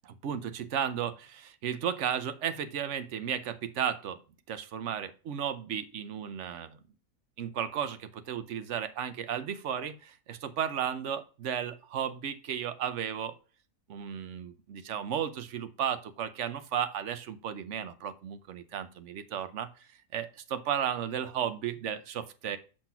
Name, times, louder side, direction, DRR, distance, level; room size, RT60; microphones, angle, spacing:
voice 1, 0.0-4.2 4.5-6.8 7.4-13.3 13.9-22.6, right 9 dB, 60° right, 11 dB, 1.0 m, -34 dB
6.6 x 5.9 x 5.7 m, 0.36 s
omnidirectional pair, 1.5 m